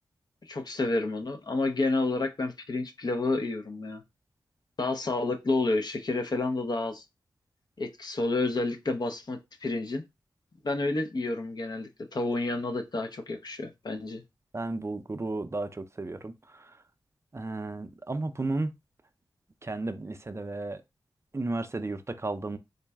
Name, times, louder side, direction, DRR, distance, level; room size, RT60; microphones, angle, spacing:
voice 1, 0.5-4.0 4.8-7.0 7.8-10.0 10.6-14.2, left 2 dB, 55° left, 0.7 m, -30 dB
voice 2, 14.5-16.8 17.3-18.7 19.6-20.8 21.3-22.6, right 2 dB, 30° right, 0.5 m, -33 dB
3.9 x 2.1 x 3.5 m
cardioid pair, 50°, 9 cm